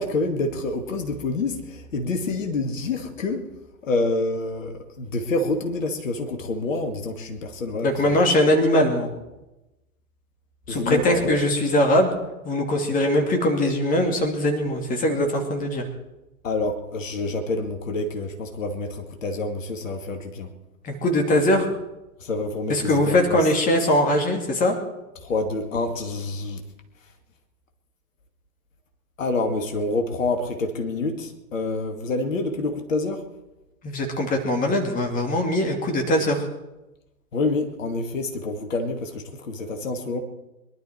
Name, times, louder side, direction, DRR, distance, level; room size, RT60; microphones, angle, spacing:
voice 1, 0.0-3.5 3.8-8.2 10.7-11.4 16.4-20.5 22.2-23.4 25.2-26.6 29.2-33.2 37.3-40.2, left 2 dB, 60° left, 5 dB, 2.3 m, -27 dB
voice 2, 7.8-9.1 10.7-12.2 12.4-15.9 20.8-21.7 22.7-24.8 33.8-36.5, left 1 dB, 20° left, 3 dB, 2.6 m, -21 dB
23.0 x 12.0 x 4.7 m, 0.99 s
figure-of-eight pair, 115°, 43 cm